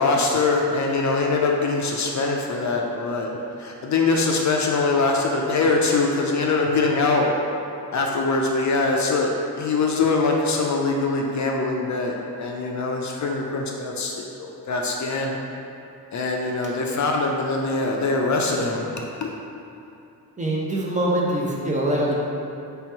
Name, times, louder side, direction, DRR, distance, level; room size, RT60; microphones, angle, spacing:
voice 1, 0.0-3.3 3.6-7.3 7.9-15.4 16.1-18.8 19.2-19.3, left 3 dB, 50° left, 0 dB, 0.5 m, -23 dB
voice 2, 20.4-22.2, right 1 dB, 20° right, -4 dB, 0.6 m, -23 dB
3.4 x 2.9 x 4.7 m, 2.7 s
cardioid pair, 105°, 39 cm